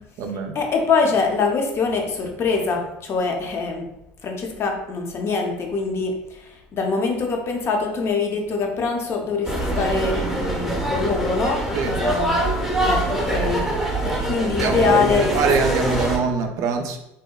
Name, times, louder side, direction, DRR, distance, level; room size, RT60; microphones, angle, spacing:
voice 1, 0.0-0.5 11.7-11.9 14.6-17.0, right 4 dB, 60° right, 5 dB, 0.3 m, -24 dB
voice 2, 0.5-3.9 4.2-12.4 12.8-15.3, left 4 dB, 45° left, 2 dB, 0.6 m, -24 dB
sound 1, 9.4-16.2, right 1 dB, 5° right, 0.7 m, -24 dB
2.7 x 2.1 x 2.2 m, 0.85 s
hypercardioid pair, 80°, 6 cm